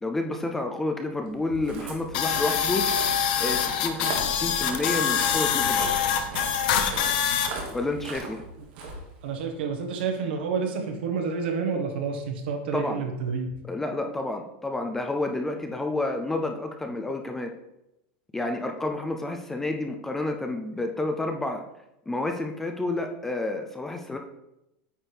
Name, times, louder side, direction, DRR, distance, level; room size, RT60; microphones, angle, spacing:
voice 1, 0.0-2.9 3.3-5.9 7.7-8.4 12.7-13.0 13.6-17.5 18.3-21.6 22.1-24.2, left 2 dB, 5° left, 4 dB, 0.3 m, -30 dB
Walk footsteps, 1.3-9.6, right 3 dB, 55° right, 1.7 m, -39 dB
sound 1, 2.1-7.5, left 8 dB, 55° left, 0.7 m, -25 dB
voice 2, 9.2-13.5, right 5 dB, 70° right, 4 dB, 1.3 m, -29 dB
8.8 x 3.4 x 4.4 m, 0.88 s
supercardioid pair, 175°, 6 cm